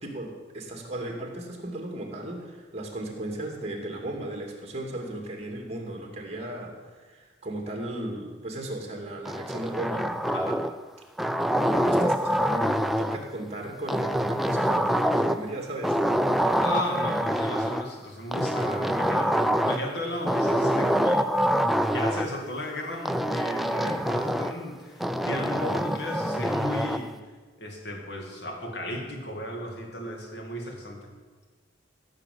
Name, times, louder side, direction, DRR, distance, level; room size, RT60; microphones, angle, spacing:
voice 1, 0.0-10.0 11.7-16.0, right 1 dB, 35° right, 1 dB, 2.4 m, -36 dB
sound 1, 9.3-10.8 11.2-13.2 13.9-15.5 15.8-17.8 18.3-19.9 20.3-22.3 23.1-24.6 25.0-27.0, equal, ahead, 0.4 m, -25 dB
voice 2, 10.3-10.6 16.6-21.3 21.9-27.2 27.6-31.1, left 1 dB, 60° left, 2 dB, 2.4 m, -35 dB
14.5 x 6.8 x 7.8 m, 1.4 s
head